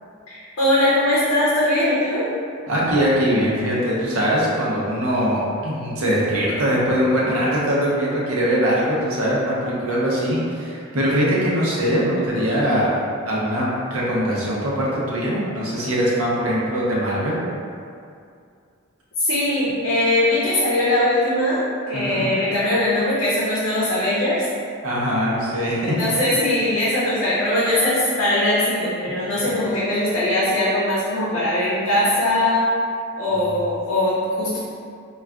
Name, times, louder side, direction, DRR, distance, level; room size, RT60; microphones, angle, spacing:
voice 1, 0.3-2.2 19.2-24.5 25.9-32.7 33.2-34.6, left 1 dB, 65° left, -8 dB, 0.6 m, -20 dB
voice 2, 2.7-13.0 13.2-13.6 13.9-17.4 21.9-22.3 24.8-26.1 29.3-29.5, equal, 85° right, -6 dB, 0.7 m, -22 dB
3.6 x 2.3 x 2.2 m, 2.4 s
head